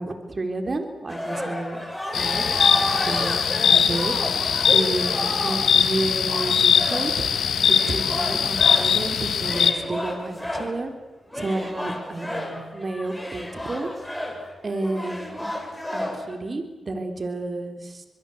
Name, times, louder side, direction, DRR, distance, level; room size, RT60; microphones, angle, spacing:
voice 1, 0.0-1.8 2.1-2.4 3.1-4.4 4.7-7.1 7.6-10.9 11.3-13.9 14.6-15.5 15.9-18.0, right 2 dB, 40° right, 5 dB, 3.7 m, -31 dB
sound 1, 1.1-9.0 9.4-10.8 11.3-16.4, left 1 dB, 10° left, 7.2 m, -32 dB
sound 2, 2.1-9.7, left 7 dB, 75° left, 1.7 m, -21 dB
24.5 x 22.5 x 7.9 m, 1.2 s
cardioid pair, 60°, 0 cm